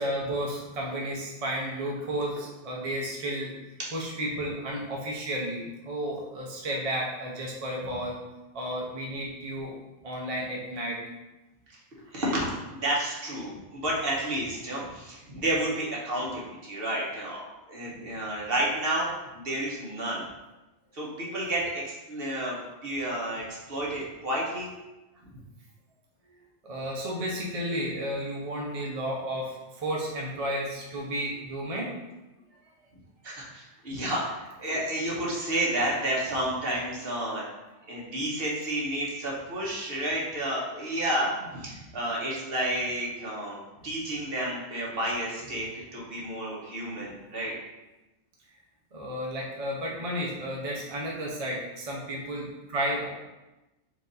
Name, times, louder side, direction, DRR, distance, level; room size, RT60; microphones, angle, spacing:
voice 1, 0.0-3.5 3.9-8.2 8.5-9.7 10.0-11.0 26.6-31.9 48.9-53.1, equal, 40° right, -3 dB, 0.6 m, -32 dB
voice 2, 12.1-12.5 12.8-20.3 20.9-24.7 33.2-37.5 37.9-47.6, right 1 dB, 55° right, -4 dB, 1.2 m, -31 dB
4.6 x 2.5 x 3.9 m, 1.0 s
omnidirectional pair, 1.2 m